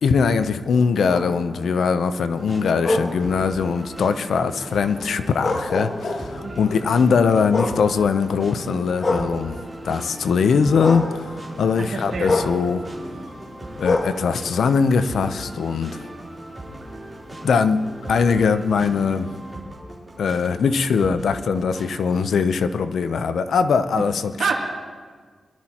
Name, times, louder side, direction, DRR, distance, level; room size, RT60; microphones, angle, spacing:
voice 1, 0.0-9.6 9.8-12.8 13.8-16.0 17.4-19.3 20.2-24.5, left 5 dB, 80° left, 10 dB, 0.7 m, -21 dB
sound 1, 0.7-9.9 10.3-15.5 16.0-19.5, left 2 dB, 40° left, 1.5 m, -30 dB
sound 2, 2.4-22.3, right 1 dB, 15° right, 3.6 m, -38 dB
voice 2, 6.4-6.8 11.7-12.3 24.4-24.5, right 5 dB, 80° right, -2 dB, 2.7 m, -27 dB
23.5 x 12.5 x 3.0 m, 1.5 s
wide cardioid pair, 120°, 0 cm